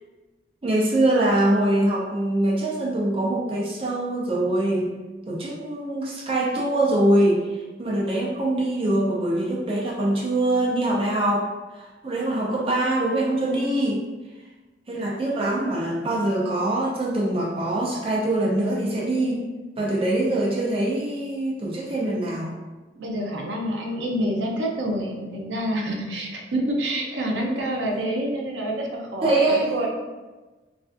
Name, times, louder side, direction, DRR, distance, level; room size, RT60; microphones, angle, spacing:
voice 1, 0.6-4.9 5.3-7.5 7.8-11.5 11.8-14.0 14.9-19.4 19.8-22.5 29.2-29.9, right 1 dB, 30° right, -4 dB, 0.4 m, -23 dB
voice 2, 23.0-29.9, right 1 dB, 75° right, 0 dB, 0.6 m, -27 dB
3.4 x 2.4 x 2.4 m, 1.2 s
head